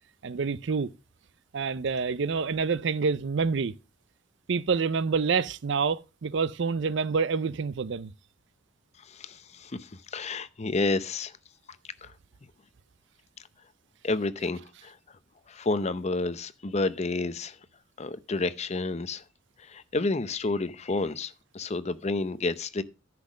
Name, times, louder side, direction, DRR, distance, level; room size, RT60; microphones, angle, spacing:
voice 1, 0.2-0.9 1.5-3.7 4.5-8.1, right 5 dB, 65° right, 0.5 m, -27 dB
voice 2, 9.1-11.3 12.0-12.1 14.0-15.0 15.5-17.6 18.0-19.2 19.6-22.8, left 3 dB, 35° left, 0.6 m, -30 dB
10.5 x 5.9 x 6.1 m
head